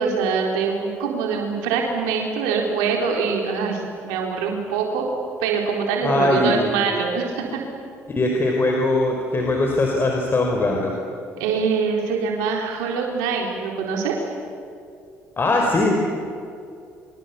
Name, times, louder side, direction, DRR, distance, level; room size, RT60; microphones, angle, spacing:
voice 1, 0.0-5.0 5.4-7.6 11.4-14.1, right 5 dB, 85° right, 0 dB, 4.2 m, -24 dB
voice 2, 6.0-6.7 8.1-10.9 15.4-15.9, left 2 dB, 35° left, 1 dB, 4.6 m, -20 dB
25.5 x 25.0 x 8.5 m, 2.4 s
supercardioid pair, 70°, 6 cm